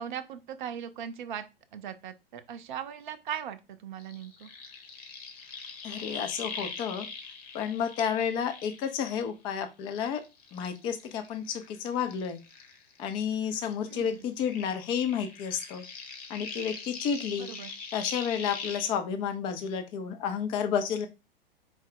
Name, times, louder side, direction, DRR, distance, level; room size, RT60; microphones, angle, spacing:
voice 1, 0.0-1.4 1.7-4.5 13.9-14.2 17.4-17.7, right 8 dB, 50° right, 9 dB, 0.6 m, -39 dB
sound 1, 4.0-9.5 9.9-13.2 13.5-18.9, left 5 dB, 40° left, 1.0 m, -42 dB
voice 2, 5.8-7.1 7.5-10.2 10.5-12.4 13.0-15.8 16.3-17.5 17.9-21.1, left 7 dB, 15° left, 8 dB, 0.4 m, -31 dB
4.6 x 2.0 x 3.8 m, 0.26 s
figure-of-eight pair, 105°, 31 cm